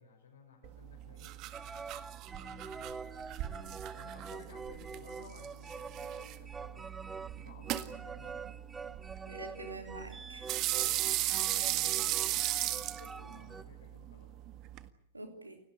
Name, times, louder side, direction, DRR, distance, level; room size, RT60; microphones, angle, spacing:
voice 1, 0.0-1.3 2.3-8.5 10.7-14.3, left 4 dB, 70° left, 1 dB, 5.6 m, -56 dB
sound 1, 0.6-14.9, right 15 dB, 40° right, 1.7 m, -37 dB
sound 2, 1.5-13.6, right 5 dB, 15° right, 1.2 m, -46 dB
voice 2, 9.3-10.9 15.1-15.6, right 2 dB, 85° right, 5 dB, 3.3 m, -47 dB
29.0 x 18.5 x 8.8 m, 0.74 s
figure-of-eight pair, 90°, 0 cm